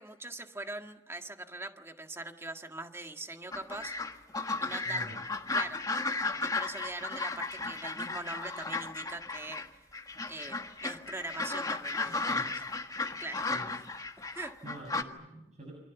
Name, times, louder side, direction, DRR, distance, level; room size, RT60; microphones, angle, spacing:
voice 1, 0.0-3.9 4.6-5.1 5.5-5.8 6.4-9.8 10.3-10.6 10.8-12.5 13.2-13.5 14.3-14.5, right 2 dB, 15° right, 5 dB, 1.8 m, -42 dB
sound 1, 3.5-9.7 9.9-15.0, left 3 dB, 20° left, 1.5 m, -35 dB
voice 2, 4.8-5.2 12.0-12.5 13.5-13.7 14.6-15.7, equal, 40° right, 2 dB, 6.8 m, -46 dB
29.0 x 26.0 x 7.1 m, 0.91 s
head